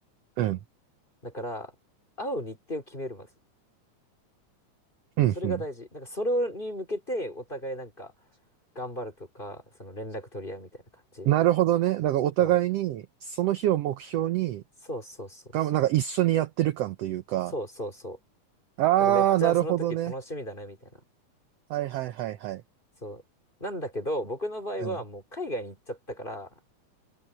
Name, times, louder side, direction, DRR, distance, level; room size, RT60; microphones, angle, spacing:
voice 1, 1.2-1.7 2.2-3.3 5.4-8.1 8.8-10.8 11.1-11.3 12.4-12.5 14.9-15.4 17.5-18.2 19.0-21.0 23.0-23.2 23.6-26.5, equal, 15° left, 3.6 m, -34 dB
voice 2, 5.2-5.6 11.2-14.6 15.5-17.5 18.8-20.1 21.7-22.6 24.8-24.9, right 13 dB, 70° right, 1.6 m, -25 dB
omnidirectional pair, 3.5 m